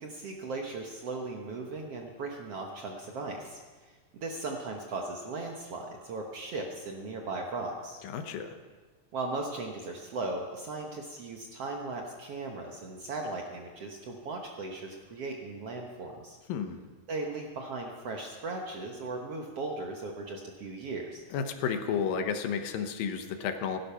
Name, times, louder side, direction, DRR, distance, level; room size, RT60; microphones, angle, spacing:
voice 1, 0.0-8.0 9.1-16.4 17.1-21.2, right 3 dB, 60° right, 1 dB, 1.7 m, -37 dB
voice 2, 8.0-8.6 16.5-16.8 21.3-23.8, left 7 dB, 75° left, 7 dB, 2.7 m, -32 dB
16.5 x 12.0 x 5.8 m, 1.4 s
omnidirectional pair, 4.1 m